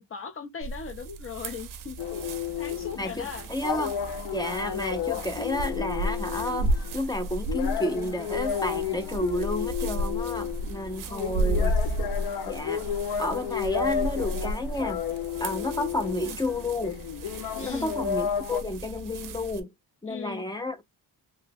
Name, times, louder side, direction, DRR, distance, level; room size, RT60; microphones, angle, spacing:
voice 1, 0.0-2.3 2.6-3.5 11.0-11.4 17.5-17.9 20.1-20.4, left 6 dB, 35° left, 0.7 m, -38 dB
sound 1, 0.6-19.6, right 1 dB, 55° right, 0.5 m, -33 dB
sound 2, 2.0-18.6, left 8 dB, 70° left, 0.6 m, -32 dB
voice 2, 3.0-4.0 4.3-11.7 12.0-12.1 12.5-12.9 13.2-15.0 15.4-17.0 17.6-19.7 20.0-20.8, left 1 dB, 10° left, 0.4 m, -31 dB
2.8 x 2.1 x 3.4 m
cardioid pair, 135°, 40 cm